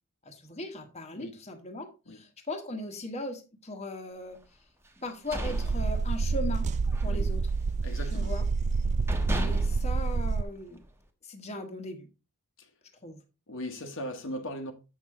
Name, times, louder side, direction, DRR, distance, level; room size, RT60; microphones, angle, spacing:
voice 1, 0.2-4.4 5.0-6.7 7.0-7.4 8.1-8.4 9.4-10.8 11.2-12.1 13.0-13.2, left 1 dB, 30° left, 1.2 m, -38 dB
sound 1, 5.0-6.5 6.9-7.1 7.5-8.2 8.7-8.8 9.1-10.9, equal, 10° right, 1.1 m, -35 dB
sound 2, 5.4-10.4, right 4 dB, 30° right, 0.4 m, -28 dB
voice 2, 7.8-8.4 12.6-12.7 13.5-14.7, left 1 dB, 60° left, 1.2 m, -39 dB
7.7 x 6.3 x 3.7 m
head